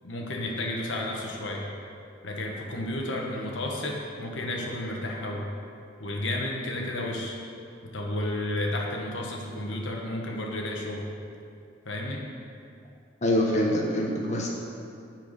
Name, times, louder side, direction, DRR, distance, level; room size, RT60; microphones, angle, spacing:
voice 1, 0.0-1.7 2.2-5.5 6.0-7.4 7.8-11.1 11.8-12.2, left 1 dB, 70° left, -1 dB, 1.3 m, -32 dB
voice 2, 13.2-14.5, left 1 dB, 40° left, -2 dB, 1.1 m, -25 dB
10.0 x 4.7 x 7.9 m, 2.5 s
head